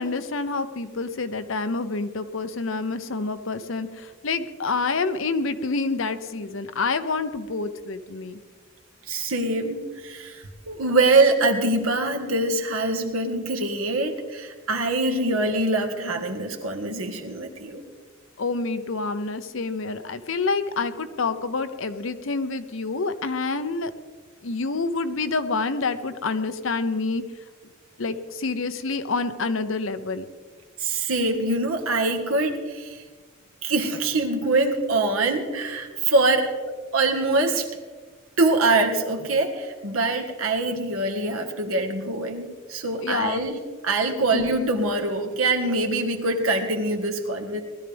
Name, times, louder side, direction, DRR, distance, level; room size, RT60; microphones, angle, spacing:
voice 1, 0.0-8.4 18.4-23.9 24.4-27.2 28.0-30.2 43.0-43.5 44.3-44.5, left 3 dB, 65° left, 10 dB, 0.8 m, -27 dB
voice 2, 9.1-17.8 30.8-33.0 33.6-36.5 36.9-37.7 38.4-47.6, right 2 dB, 80° right, 4 dB, 1.7 m, -24 dB
19.5 x 12.5 x 3.5 m, 1.5 s
head